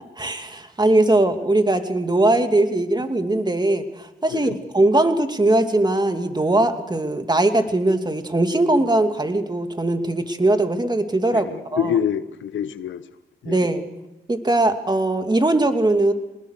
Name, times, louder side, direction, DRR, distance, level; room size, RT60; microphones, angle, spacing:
voice 1, 0.2-3.8 4.2-11.9 13.5-13.9 14.3-16.1, right 2 dB, 20° right, 7 dB, 2.6 m, -20 dB
voice 2, 11.3-13.0 13.4-13.6, left 8 dB, 70° left, 14 dB, 1.0 m, -26 dB
24.0 x 20.0 x 6.7 m, 0.99 s
supercardioid pair, 50°, 20 cm